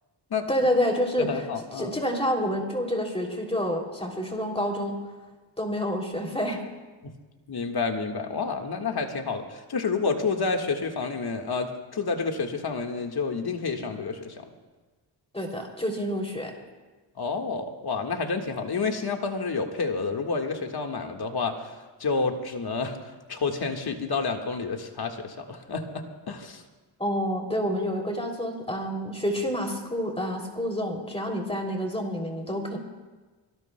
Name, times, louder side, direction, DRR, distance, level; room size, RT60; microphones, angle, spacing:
voice 1, 0.5-1.4 1.8-5.0 5.6-6.6 15.3-16.5 27.0-32.8, equal, 10° left, 1 dB, 2.9 m, -28 dB
voice 2, 1.2-2.0 7.0-7.1 7.5-14.5 17.2-26.6, left 4 dB, 50° left, 4 dB, 1.7 m, -29 dB
25.0 x 16.5 x 2.2 m, 1.3 s
cardioid pair, 65°, 48 cm